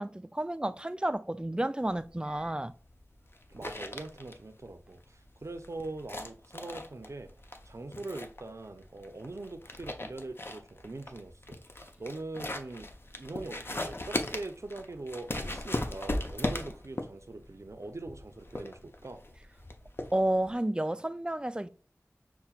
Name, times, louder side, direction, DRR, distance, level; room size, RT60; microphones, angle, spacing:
voice 1, 0.0-2.7 20.1-21.7, right 1 dB, 15° right, 0.3 m, -31 dB
sound 1, 1.9-20.5, left 1 dB, 45° left, 0.5 m, -38 dB
voice 2, 3.5-7.3 7.7-19.2, right 2 dB, 65° right, 0.6 m, -42 dB
5.6 x 2.2 x 2.3 m
wide cardioid pair, 45°, 5 cm